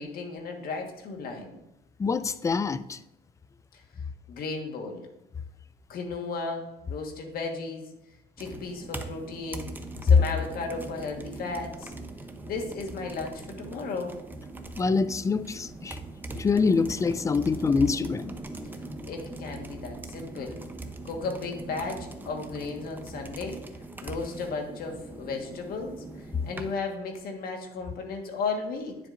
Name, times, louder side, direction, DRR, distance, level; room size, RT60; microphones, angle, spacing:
voice 1, 0.0-1.6 3.7-3.8 4.3-5.1 5.9-7.9 8.4-9.7 10.0-11.9 12.5-14.1 19.0-20.6 21.0-23.6 24.0-29.0, left 4 dB, 60° left, 2 dB, 1.5 m, -35 dB
voice 2, 2.0-3.0 14.8-16.0 16.4-18.3, left 4 dB, 20° left, 15 dB, 0.3 m, -25 dB
sound 1, 8.4-26.7, right 2 dB, 10° right, 0.7 m, -41 dB
9.9 x 7.4 x 2.6 m, 0.90 s
cardioid pair, 110°, 17 cm